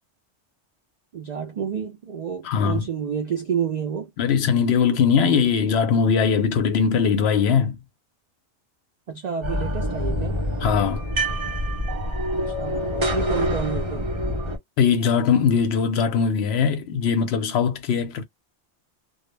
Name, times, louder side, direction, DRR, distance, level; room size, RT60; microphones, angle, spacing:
voice 1, 1.1-4.1 9.1-10.4 12.3-14.1, right 7 dB, 65° right, 0.4 m, -29 dB
voice 2, 2.4-2.8 4.2-7.8 10.6-11.0 14.8-18.2, left 6 dB, 70° left, 0.8 m, -20 dB
sound 1, 9.4-14.6, equal, 30° right, 0.7 m, -26 dB
2.2 x 2.0 x 3.1 m
omnidirectional pair, 1.2 m